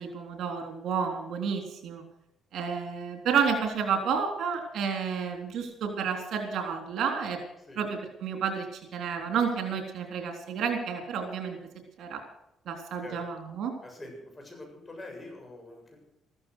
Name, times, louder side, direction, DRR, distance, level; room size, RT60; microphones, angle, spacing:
voice 1, 0.0-2.0 2.5-7.4 7.8-11.6 12.0-12.2 12.7-13.7, right 6 dB, 70° right, 4 dB, 3.5 m, -30 dB
voice 2, 13.8-16.0, left 2 dB, 25° left, 1 dB, 7.3 m, -45 dB
14.5 x 14.0 x 6.4 m, 0.81 s
cardioid pair, 90°, 0 cm